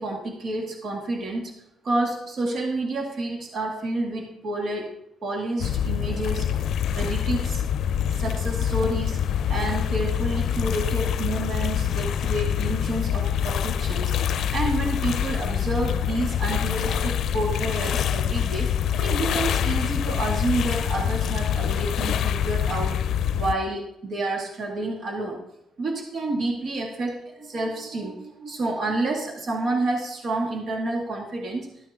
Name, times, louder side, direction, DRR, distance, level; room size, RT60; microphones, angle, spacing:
voice 1, 0.0-1.5 1.8-4.9 5.2-6.5 6.9-7.6 8.1-9.2 9.5-18.7 19.0-23.0 23.3-25.4 25.8-31.7, right 2 dB, 55° right, 0 dB, 2.1 m, -29 dB
sound 1, 5.6-23.5, left 9 dB, 70° left, 0.5 m, -25 dB
13.5 x 9.1 x 3.7 m, 0.81 s
cardioid pair, 90°, 0 cm